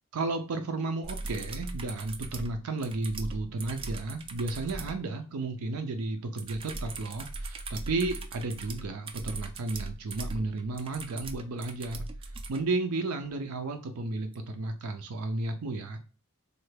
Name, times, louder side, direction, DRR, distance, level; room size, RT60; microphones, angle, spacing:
voice 1, 0.1-12.1 12.5-16.0, right 2 dB, 85° right, 6 dB, 0.5 m, -33 dB
sound 1, 1.0-5.0 6.4-12.6 14.3-14.4, right 2 dB, 25° right, 0.3 m, -39 dB
3.2 x 2.2 x 3.2 m, 0.36 s
head